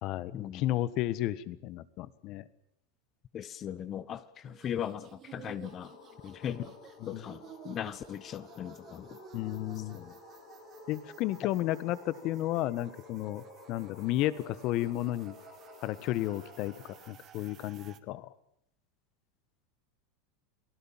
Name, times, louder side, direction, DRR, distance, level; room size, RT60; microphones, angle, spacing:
voice 1, 0.0-2.4 7.0-7.2 9.3-10.0 10.9-15.4 15.8-16.7 17.1-18.3, left 15 dB, 50° left, 1.5 m, -33 dB
voice 2, 3.3-5.9 6.2-6.7 7.1-9.2 9.9-10.1, left 9 dB, 35° left, 1.2 m, -39 dB
sound 1, 4.4-18.0, right 10 dB, 35° right, 2.0 m, -53 dB
sound 2, 5.6-17.1, left 9 dB, 70° left, 3.5 m, -54 dB
29.0 x 18.5 x 7.5 m
supercardioid pair, 125°, 0 cm